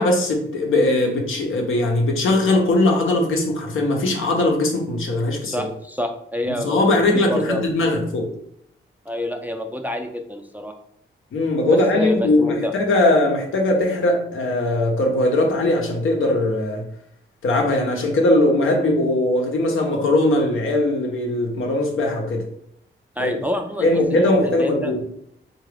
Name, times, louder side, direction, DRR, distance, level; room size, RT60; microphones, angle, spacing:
voice 1, 0.0-5.7 6.5-8.3 11.3-16.8 17.4-22.4 23.2-23.3 23.8-24.9, left 2 dB, 75° left, 1 dB, 0.9 m, -20 dB
voice 2, 5.4-7.6 9.1-10.7 11.7-12.7 23.2-24.9, left 1 dB, 10° right, 3 dB, 0.4 m, -28 dB
3.6 x 2.5 x 3.2 m, 0.70 s
cardioid pair, 70°, 21 cm